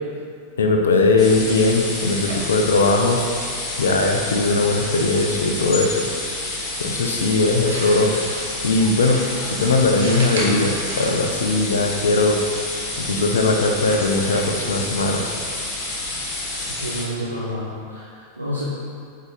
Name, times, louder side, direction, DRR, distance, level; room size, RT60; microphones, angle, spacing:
voice 1, 0.6-3.3 3.8-6.0 6.8-8.1 8.6-12.4 13.0-15.2, left 3 dB, 65° left, 2 dB, 0.8 m, -19 dB
sound 1, 1.2-17.0, left 2 dB, 25° left, 1.8 m, -29 dB
sound 2, 1.3-16.9, right 1 dB, 65° right, 1.5 m, -38 dB
voice 2, 16.7-18.6, equal, 85° right, -7 dB, 0.9 m, -29 dB
8.0 x 5.3 x 3.9 m, 2.4 s
figure-of-eight pair, 90°, 0 cm